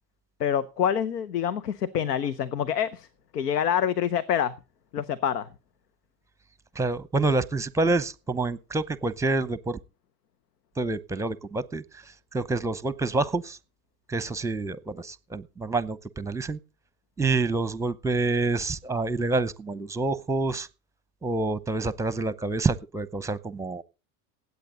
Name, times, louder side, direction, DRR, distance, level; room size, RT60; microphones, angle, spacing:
voice 1, 0.4-3.1 3.3-4.5 4.9-5.5, left 8 dB, 90° left, 0.8 m, -26 dB
voice 2, 6.7-9.8 10.8-11.8 12.3-13.6 14.1-16.6 17.2-20.7 21.2-23.8, right 3 dB, 5° right, 0.7 m, -27 dB
19.0 x 8.3 x 3.9 m
hypercardioid pair, 85°, 47 cm